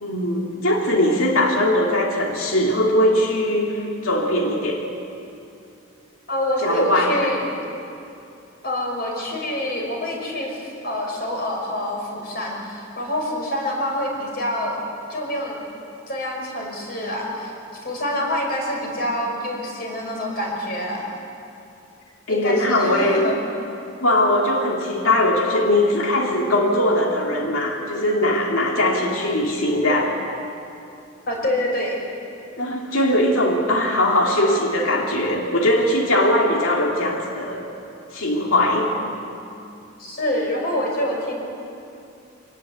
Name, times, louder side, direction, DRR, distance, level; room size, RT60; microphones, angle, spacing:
voice 1, 0.0-4.9 6.6-7.3 22.3-23.3 24.0-30.2 32.6-37.7 38.1-39.0, left 1 dB, 90° left, 0 dB, 2.3 m, -20 dB
voice 2, 6.3-7.5 8.6-14.8 15.1-15.6 16.1-17.5 17.8-21.1 22.3-23.4 31.3-32.0 40.0-41.3, left 1 dB, 45° left, 0 dB, 5.6 m, -26 dB
24.5 x 18.5 x 8.0 m, 2.7 s
head